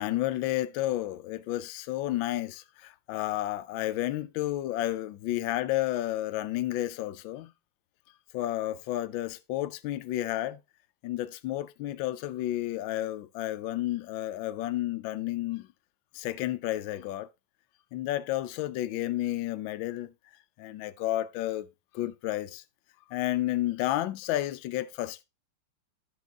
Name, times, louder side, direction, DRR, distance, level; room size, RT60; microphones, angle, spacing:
voice 1, 0.0-7.5 8.3-10.6 11.0-15.7 16.1-17.3 17.9-20.1 20.6-21.7 21.9-22.6 23.1-25.2, left 15 dB, 70° left, 1.3 m, -31 dB
10.0 x 6.3 x 3.5 m
omnidirectional pair, 2.4 m